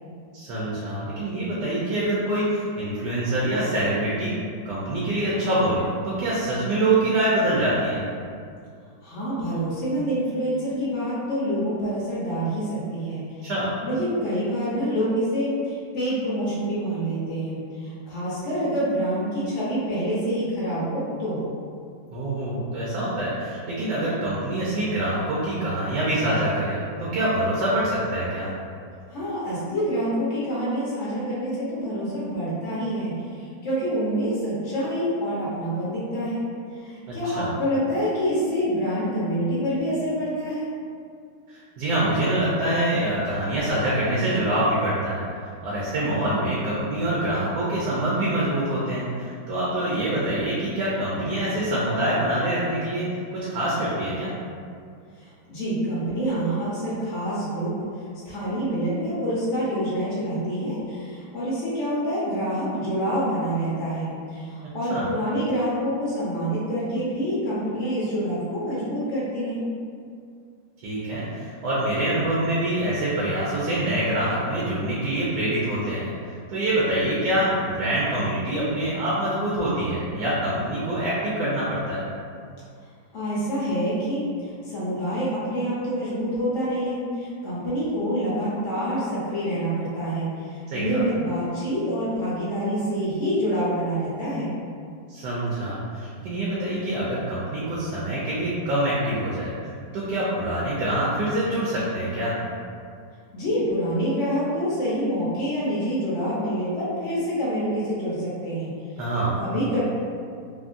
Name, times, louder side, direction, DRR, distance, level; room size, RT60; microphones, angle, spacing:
voice 1, 0.3-4.3 4.6-8.0 13.4-13.7 22.1-28.5 37.1-37.5 41.5-45.3 45.6-53.1 53.3-54.3 64.9-65.1 70.8-76.1 76.5-82.1 90.7-91.0 95.1-102.4 109.0-109.3, right 1 dB, 70° right, -7 dB, 1.1 m, -25 dB
voice 2, 9.0-13.5 13.8-21.4 29.1-36.4 36.8-40.7 48.9-49.1 55.2-57.7 58.2-69.6 83.1-94.5 103.3-108.7 109.4-109.8, equal, 55° left, -8 dB, 0.9 m, -27 dB
3.5 x 2.0 x 2.5 m, 2.3 s
omnidirectional pair, 1.9 m